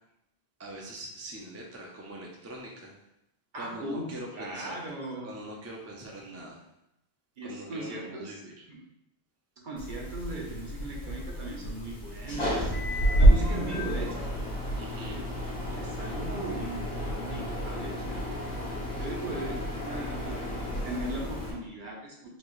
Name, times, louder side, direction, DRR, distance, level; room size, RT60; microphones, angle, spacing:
voice 1, 0.6-2.9 3.5-4.8 5.2-6.6 7.4-8.6 14.8-15.2 18.9-19.1, right 1 dB, 20° right, -1 dB, 0.4 m, -43 dB
voice 2, 3.5-5.4 6.3-6.5 7.4-8.3 8.7-8.8 9.6-14.2 15.0-15.2 15.7-18.2 19.0-22.4, right 1 dB, 55° right, -2 dB, 0.8 m, -38 dB
sound 1, 9.8-21.5, equal, 80° left, 1.5 m, -29 dB
4.2 x 2.5 x 3.1 m, 0.83 s
omnidirectional pair, 1.1 m